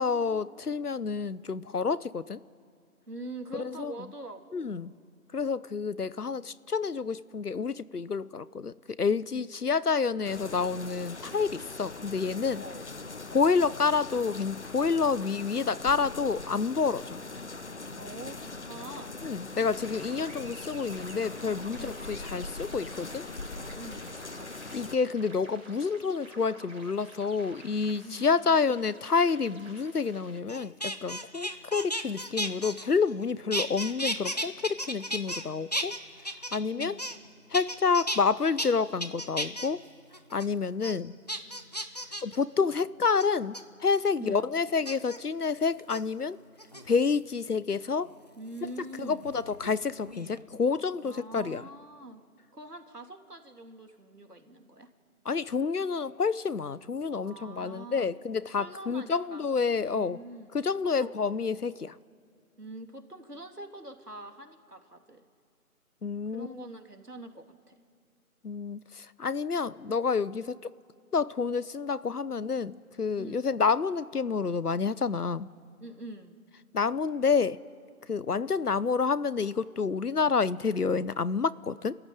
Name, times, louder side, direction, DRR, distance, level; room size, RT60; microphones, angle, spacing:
voice 1, 0.0-2.4 3.5-3.9 4.5-4.9 5.3-12.6 13.3-17.2 19.2-23.3 24.7-37.0 37.5-39.8 40.3-41.1 42.2-46.4 46.8-48.1 49.0-51.6 55.2-60.2 60.5-62.0 66.0-66.6 68.4-70.7 71.1-75.5 76.7-77.6 78.1-82.0, left 5 dB, 80° left, 18 dB, 0.9 m, -29 dB
voice 2, 3.1-4.6 9.3-9.5 12.5-12.8 17.9-19.2 21.8-22.0 23.7-24.2 28.0-28.3 36.7-37.1 44.2-44.5 48.4-49.2 51.0-52.2 52.5-54.9 57.2-58.1 58.6-60.5 61.0-61.2 62.6-65.3 66.3-67.8 73.2-73.5 75.8-76.4, right 2 dB, 85° right, 4 dB, 3.2 m, -44 dB
sound 1, 10.2-25.0, left 3 dB, 50° left, 1.1 m, -41 dB
sound 2, 19.6-30.4, right 2 dB, 55° right, 4.0 m, -51 dB
sound 3, 30.5-33.2 33.5-35.4 35.7-37.3 37.5-38.2 38.6-38.7 39.0-39.7 40.1-40.5 40.8-40.9 41.3-42.4 43.2-43.6 44.8-45.2 45.8-46.0 46.6-47.2 48.6-49.8 50.0-50.4, equal, 25° left, 0.8 m, -34 dB
27.5 x 14.0 x 9.3 m, 2.5 s
figure-of-eight pair, 160°, 45 cm